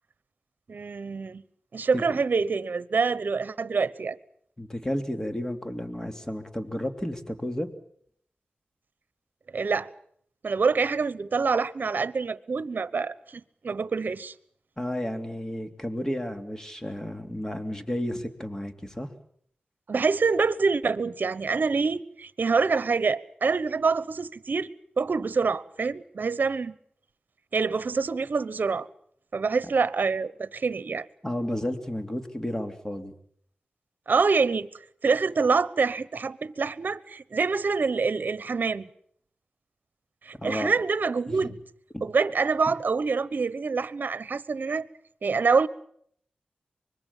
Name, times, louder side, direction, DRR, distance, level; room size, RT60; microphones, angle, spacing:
voice 1, 0.7-1.4 1.7-4.2 9.5-9.9 10.4-14.3 19.9-24.7 25.0-26.7 27.5-28.9 29.3-31.0 34.1-34.7 35.0-38.9 40.2-41.6 42.0-44.9 45.2-45.7, right 4 dB, 65° right, 1.0 m, -26 dB
voice 2, 4.6-7.7 14.8-19.1 31.2-33.1 40.4-40.7 41.3-41.5 41.9-42.0, left 1 dB, 15° left, 3.1 m, -32 dB
24.5 x 21.5 x 7.3 m
cardioid pair, 50°, 3 cm